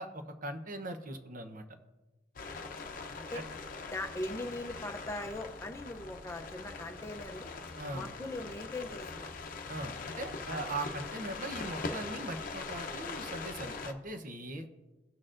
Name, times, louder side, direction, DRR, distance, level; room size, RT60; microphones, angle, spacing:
voice 1, 0.0-1.6 3.3-3.5 7.8-8.1 9.7-14.7, right 2 dB, 50° right, 6 dB, 0.8 m, -40 dB
sound 1, 2.4-13.9, left 4 dB, 50° left, 0.7 m, -42 dB
voice 2, 2.5-3.4 3.9-7.5 7.9-9.3 10.5-10.6, left 2 dB, 15° left, 4 dB, 0.6 m, -41 dB
17.0 x 6.5 x 2.5 m, 1.2 s
head